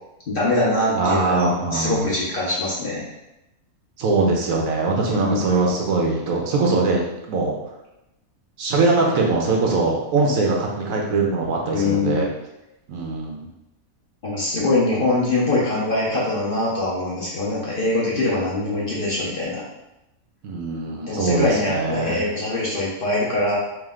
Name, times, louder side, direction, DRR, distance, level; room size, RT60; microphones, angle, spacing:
voice 1, 0.3-3.0 5.1-5.6 11.7-12.2 14.2-19.6 21.0-23.6, left 2 dB, 45° left, -6 dB, 0.9 m, -23 dB
voice 2, 1.0-2.1 4.0-7.6 8.6-12.3 12.9-13.5 20.4-22.2, right 3 dB, 70° right, -1 dB, 1.1 m, -22 dB
3.2 x 3.1 x 3.6 m, 0.91 s
omnidirectional pair, 1.6 m